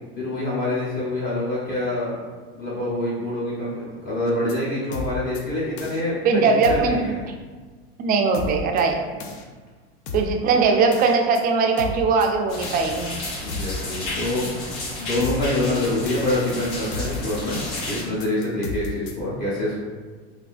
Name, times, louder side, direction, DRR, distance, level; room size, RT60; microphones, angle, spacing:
voice 1, 0.2-2.2 2.5-7.2 9.2-9.3 13.4-19.8, left 1 dB, 30° left, -8 dB, 0.9 m, -26 dB
sound 1, 4.3-4.5 4.9-5.4 5.8-6.0 6.6-6.9 8.3-8.8 9.2-9.4 10.1-10.4 10.9-11.4 11.8-12.3 12.6-12.9 13.5-13.8 15.0-19.1, left 3 dB, 80° left, 0.6 m, -33 dB
voice 2, 6.2-7.0 8.0-9.0 10.1-13.1, right 4 dB, 30° right, 3 dB, 0.3 m, -20 dB
sound 2, 12.5-18.0, left 2 dB, 65° left, 1.3 m, -32 dB
3.3 x 2.6 x 2.5 m, 1.4 s
supercardioid pair, 115°, 32 cm